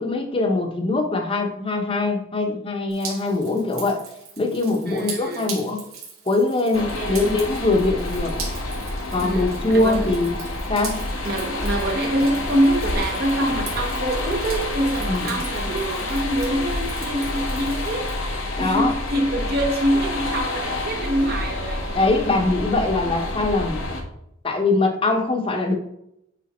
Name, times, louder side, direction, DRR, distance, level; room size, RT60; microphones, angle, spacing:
voice 1, 0.0-4.0 4.4-5.8 6.3-8.4 9.1-10.3 10.7-11.0 15.1-15.4 18.6-18.9 21.9-23.8 24.4-25.7, left 2 dB, 25° left, 0.9 m, -22 dB
Drip, 2.9-18.1, right 5 dB, 85° right, 2.7 m, -40 dB
voice 2, 4.9-5.6 6.7-7.3 9.2-10.1 11.2-18.1 18.6-21.9, right 1 dB, 50° right, 1.1 m, -25 dB
sound 1, 6.7-24.0, left 2 dB, 90° left, 1.2 m, -28 dB
8.5 x 3.4 x 4.3 m
head